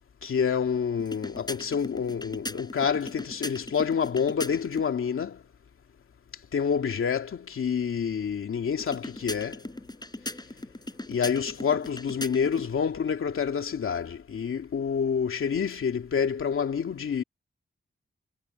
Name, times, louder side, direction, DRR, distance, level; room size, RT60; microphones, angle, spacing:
voice 1, 0.2-5.4 6.5-9.6 11.1-17.2, left 6 dB, 85° left, 2.5 m, -28 dB
sound 1, 1.0-4.9 8.8-12.7, left 1 dB, 20° left, 7.1 m, -39 dB
cardioid pair, 55°, 21 cm